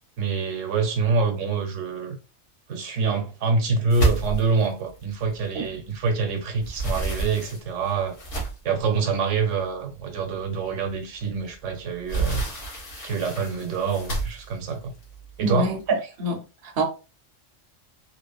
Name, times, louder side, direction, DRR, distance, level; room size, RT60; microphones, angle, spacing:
voice 1, 0.2-2.2 2.7-8.2 8.6-12.4 13.0-14.9 15.4-15.8, right 4 dB, 80° right, 1.0 m, -26 dB
sound 1, 3.9-6.1 6.4-8.8 9.5-9.6 10.0-10.1 11.5-15.8, right 3 dB, 75° left, 1.4 m, -30 dB
voice 2, 15.4-16.8, right 2 dB, 60° right, 0.7 m, -26 dB
2.9 x 2.1 x 2.3 m
omnidirectional pair, 1.3 m